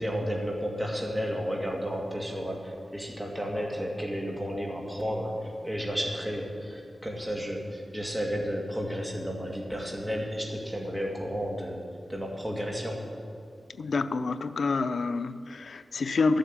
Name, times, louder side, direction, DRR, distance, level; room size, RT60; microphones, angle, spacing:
voice 1, 0.0-11.8 12.1-13.1, equal, 5° right, -1 dB, 2.3 m, -32 dB
voice 2, 13.8-16.4, left 4 dB, 90° left, 11 dB, 0.5 m, -28 dB
12.0 x 7.7 x 9.9 m, 2.2 s
wide cardioid pair, 105°, 0 cm